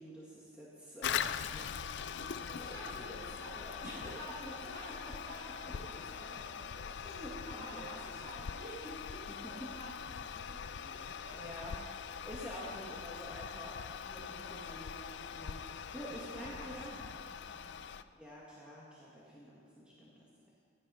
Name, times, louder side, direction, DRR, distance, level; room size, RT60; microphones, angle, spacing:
voice 1, 0.0-2.7 3.0-3.3 3.6-4.1 4.4-4.5 4.8-4.9 6.3-6.4 6.9-7.8 9.3-9.7 11.3-16.9 18.1-20.3, equal, 5° right, -6 dB, 1.7 m, -49 dB
Toilet flush, 1.0-18.0, left 7 dB, 60° left, 0.4 m, -42 dB
voice 2, 2.5-11.4 14.4-14.9 15.9-18.0, right 1 dB, 45° right, -4 dB, 4.5 m, -51 dB
15.0 x 10.5 x 5.6 m, 2.2 s
head